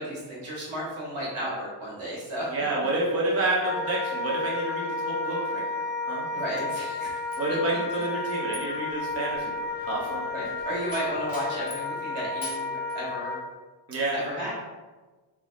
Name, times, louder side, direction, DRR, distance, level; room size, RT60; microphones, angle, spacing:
voice 1, 0.0-2.5 6.3-7.2 10.3-13.4 14.1-14.5, right 1 dB, 80° right, -5 dB, 1.5 m, -33 dB
voice 2, 2.5-6.3 7.4-10.3 13.9-14.2, right 2 dB, 30° right, -5 dB, 0.7 m, -29 dB
Wind instrument woodwind instrument, 3.6-13.5, left 3 dB, 25° left, 0.3 m, -32 dB
sound 1, 7.3-12.0 12.4-13.0, left 2 dB, 45° left, 0.8 m, -44 dB
3.5 x 2.0 x 3.6 m, 1.3 s
wide cardioid pair, 130°, 50 cm